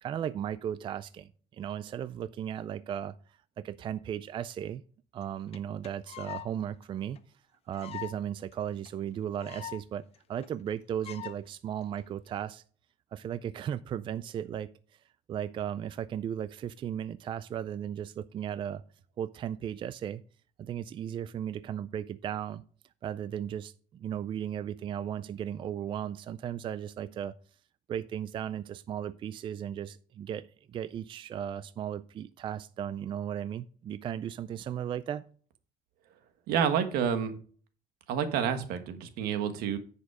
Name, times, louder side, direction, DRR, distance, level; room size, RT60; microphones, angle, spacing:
voice 1, 0.0-3.1 3.6-4.8 5.1-7.2 7.7-10.0 10.3-12.6 13.1-14.7 15.3-18.8 19.2-20.2 20.6-22.6 23.0-27.3 27.9-35.2, right 9 dB, 35° right, 0.3 m, -36 dB
sound 1, 5.2-5.3 5.5-5.6 5.8-6.5 6.8-6.9 7.2-7.3 7.7-8.2 8.5-8.6 8.9-9.0 9.1-9.8 10.1-10.2 10.4-10.7 11.0-11.4 12.0-12.3, left 11 dB, 40° left, 0.7 m, -42 dB
voice 2, 36.5-37.4 38.1-39.8, right 8 dB, 85° right, 1.4 m, -29 dB
9.9 x 5.2 x 4.8 m
cardioid pair, 150°, 15 cm